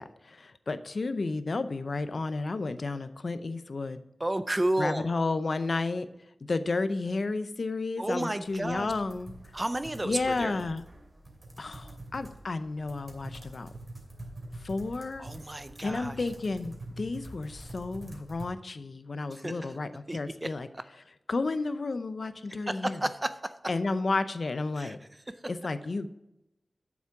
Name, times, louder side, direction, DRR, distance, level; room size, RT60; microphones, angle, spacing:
voice 1, 0.0-4.0 4.8-6.1 6.5-9.3 10.0-10.8 11.6-13.7 14.6-15.3 15.8-20.7 21.3-23.0 23.7-25.0 25.5-26.1, left 3 dB, 60° left, 11 dB, 0.6 m, -32 dB
voice 2, 4.2-5.1 8.0-8.9 9.5-10.6 15.2-16.3 19.3-19.7 20.1-20.5 22.7-23.3 24.8-25.0, right 1 dB, 20° right, 11 dB, 0.5 m, -32 dB
sound 1, 8.4-18.4, right 1 dB, 40° right, 2.6 m, -46 dB
8.2 x 7.2 x 5.9 m, 0.91 s
wide cardioid pair, 70°, 0 cm